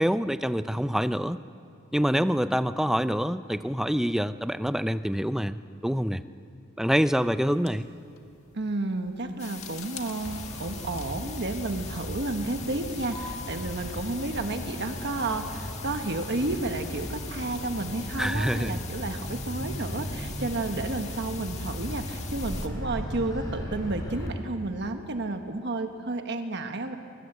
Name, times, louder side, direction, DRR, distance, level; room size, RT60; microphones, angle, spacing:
voice 1, 0.0-1.4 1.9-6.2 6.8-7.9 18.2-18.8, equal, ahead, 12 dB, 0.5 m, -26 dB
sound 1, 7.5-14.0, left 6 dB, 85° left, 1.7 m, -51 dB
voice 2, 8.5-26.9, right 2 dB, 55° right, 6 dB, 1.3 m, -31 dB
sound 2, 9.4-22.7, left 7 dB, 35° left, 1.6 m, -43 dB
Motor vehicle (road), 10.3-24.3, equal, 15° left, 5.0 m, -37 dB
24.0 x 21.5 x 8.0 m, 2.4 s
head